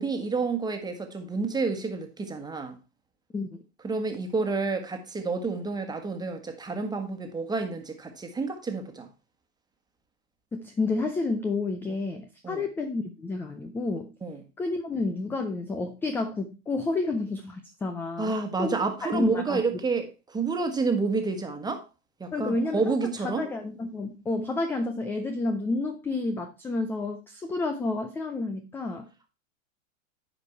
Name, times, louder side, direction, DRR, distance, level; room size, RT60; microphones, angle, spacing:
voice 1, 0.0-2.8 3.8-9.1 12.4-12.6 14.2-14.4 18.2-21.8 22.2-23.4, right 4 dB, 10° right, 1.4 m, -29 dB
voice 2, 10.5-14.1 14.6-18.3 18.6-19.6 22.3-23.0 23.2-29.1, left 3 dB, 5° left, 0.3 m, -30 dB
9.8 x 5.2 x 4.5 m
hypercardioid pair, 120°, 40 cm